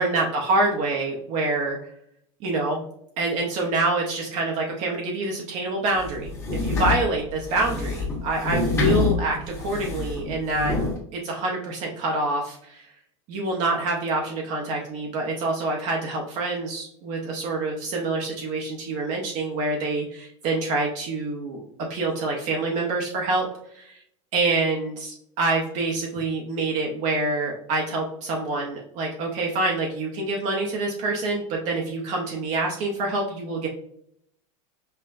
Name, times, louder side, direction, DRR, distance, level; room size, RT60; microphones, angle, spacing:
voice 1, 0.0-1.8 2.4-2.8 3.2-10.8 11.1-12.9 13.3-21.6 21.9-23.5 24.3-33.7, right 2 dB, 40° right, 0 dB, 0.7 m, -26 dB
sound 1, 5.9-11.0, left 3 dB, 15° left, 1.1 m, -26 dB
5.5 x 2.1 x 2.5 m, 0.70 s
supercardioid pair, 145°, 17 cm